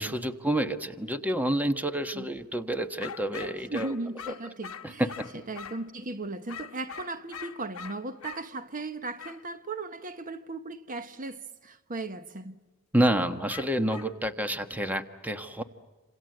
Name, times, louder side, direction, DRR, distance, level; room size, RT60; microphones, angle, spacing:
voice 1, 0.0-3.9 4.3-4.4 4.8-5.3 12.9-15.6, right 1 dB, 10° right, 1.2 m, -28 dB
sound 1, 3.0-5.9 6.5-8.5 9.2-9.4 13.5-14.1, left 7 dB, 70° left, 1.1 m, -43 dB
voice 2, 3.7-5.1 5.5-12.6, right 3 dB, 40° right, 1.1 m, -37 dB
28.5 x 27.0 x 7.7 m
head